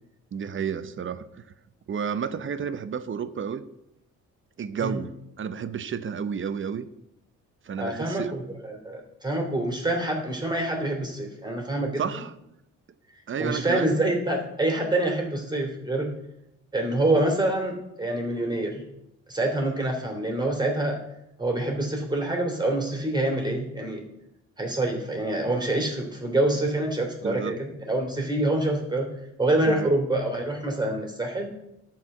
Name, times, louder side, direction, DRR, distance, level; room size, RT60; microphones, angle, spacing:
voice 1, 0.3-1.2 1.9-3.6 4.6-6.9 7.6-8.3 12.0-12.3 13.3-14.0 27.2-27.6 29.7-29.9, right 7 dB, 40° right, 13 dB, 0.8 m, -31 dB
voice 2, 7.8-12.0 13.4-16.1 16.7-18.8 19.3-21.0 21.4-24.0 24.6-29.1 29.4-31.5, right 1 dB, 15° right, 2 dB, 3.0 m, -26 dB
11.0 x 4.8 x 7.8 m, 0.84 s
cardioid pair, 90°, 30 cm